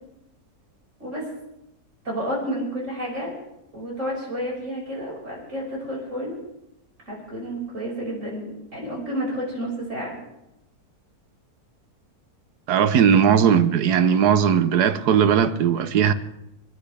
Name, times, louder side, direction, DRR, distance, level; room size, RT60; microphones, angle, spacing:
voice 1, 2.0-3.4 3.7-6.4 7.0-10.1, equal, 50° right, 5.9 m, -30 dB
voice 2, 12.7-16.1, right 8 dB, 85° right, 1.4 m, -18 dB
29.0 x 10.0 x 3.4 m
omnidirectional pair, 1.6 m